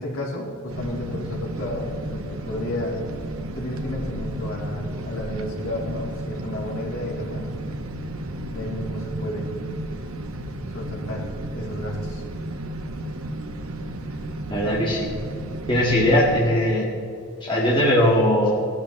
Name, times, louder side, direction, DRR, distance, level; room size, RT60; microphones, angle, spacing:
voice 1, 0.0-3.0 3.5-7.5 8.5-9.5 10.7-12.2, left 1 dB, 70° left, -3 dB, 3.5 m, -32 dB
sound 1, 0.7-16.5, right 1 dB, 70° right, 1.0 m, -33 dB
voice 2, 14.5-15.1 15.7-16.9 17.4-18.5, left 1 dB, 20° left, -5 dB, 2.0 m, -19 dB
19.0 x 12.5 x 3.3 m, 2.5 s
head